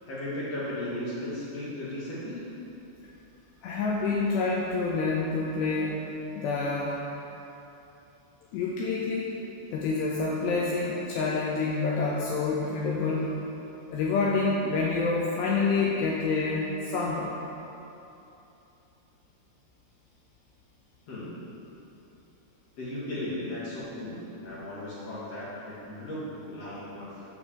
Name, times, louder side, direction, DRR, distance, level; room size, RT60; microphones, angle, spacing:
voice 1, 0.0-2.5 21.1-21.4 22.8-27.2, left 1 dB, 60° left, -9 dB, 1.7 m, -36 dB
voice 2, 3.6-7.1 8.5-9.3 9.7-13.4 13.9-17.3, left 3 dB, 85° left, -4 dB, 2.5 m, -27 dB
8.0 x 5.8 x 6.9 m, 2.9 s
omnidirectional pair, 5.7 m